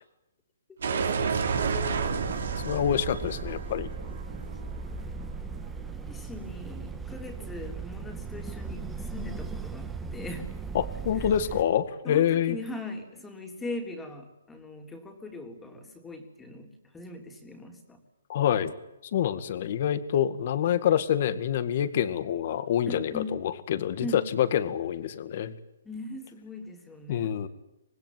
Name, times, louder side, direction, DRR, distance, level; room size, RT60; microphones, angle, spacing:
voice 1, 0.8-2.2 5.9-10.5 11.2-11.3 12.0-18.0 22.9-23.3 24.0-24.2 25.8-27.3, left 2 dB, 10° left, 4 dB, 3.5 m, -40 dB
sound 1, 0.8-5.6, right 5 dB, 70° right, 3.4 m, -31 dB
sound 2, 1.5-11.6, right 4 dB, 10° right, 1.6 m, -38 dB
voice 2, 2.6-3.9 10.7-12.6 18.3-18.7 19.1-25.6 27.1-27.5, left 10 dB, 50° left, 13 dB, 2.0 m, -26 dB
25.5 x 19.5 x 9.4 m, 0.96 s
hypercardioid pair, 145°, 0 cm